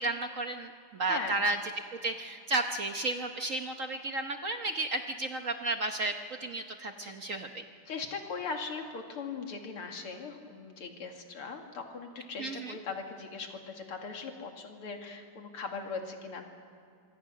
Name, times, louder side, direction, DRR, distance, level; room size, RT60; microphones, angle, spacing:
voice 1, 0.0-1.6 2.0-6.1 6.4-7.6 12.4-12.8, right 2 dB, 50° right, 6 dB, 1.1 m, -33 dB
voice 2, 1.0-1.4 7.0-7.2 7.9-16.5, left 4 dB, 85° left, 3 dB, 3.2 m, -39 dB
25.5 x 24.5 x 6.5 m, 2.4 s
omnidirectional pair, 2.4 m